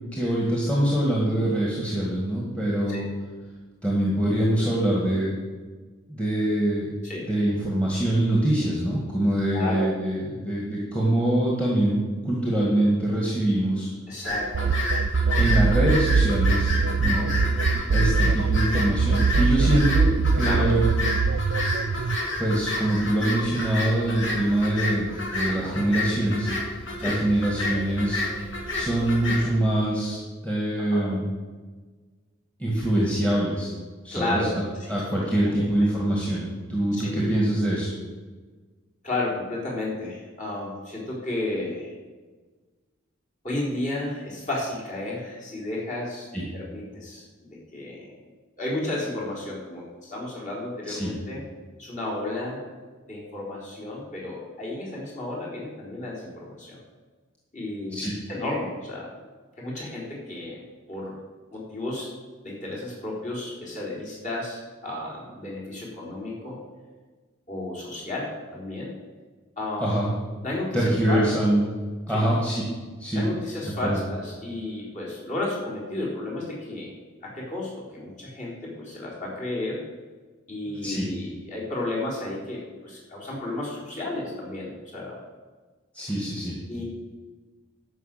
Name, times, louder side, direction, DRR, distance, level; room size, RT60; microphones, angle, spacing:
voice 1, 0.0-3.1 3.8-5.3 6.1-6.9 7.2-12.0 12.3-13.9 15.4-17.3 17.7-20.1 20.3-20.9 22.4-26.5 27.0-28.2 28.7-30.2 30.4-31.2 32.6-33.7 34.0-34.5 34.9-37.9 46.3-46.4 51.0-51.1 57.9-58.1 69.8-70.1 70.7-71.6 72.1-72.6 73.0-73.2 73.8-74.0 80.8-81.1 85.9-86.6, right 1 dB, 5° left, -4 dB, 1.8 m, -24 dB
voice 2, 9.5-9.9 14.1-14.7 17.0-17.4 20.4-20.7 25.5-25.8 27.0-27.2 30.8-31.1 34.1-34.5 34.8-35.9 36.9-37.3 39.0-41.9 43.4-48.2 48.6-51.4 51.8-52.6 53.1-56.8 57.5-58.0 58.3-59.1 59.6-60.6 60.9-61.2 61.5-62.1 62.4-66.6 67.5-68.9 69.6-70.0 70.4-71.2 72.1-72.2 73.1-76.9 77.2-79.8 80.5-85.2 86.7-86.8, left 2 dB, 35° left, -5 dB, 3.9 m, -33 dB
sound 1, 14.2-29.4, left 2 dB, 70° left, 2.9 m, -30 dB
sound 2, 14.5-22.2, right 5 dB, 65° right, 0.4 m, -23 dB
11.0 x 6.0 x 7.6 m, 1.3 s
head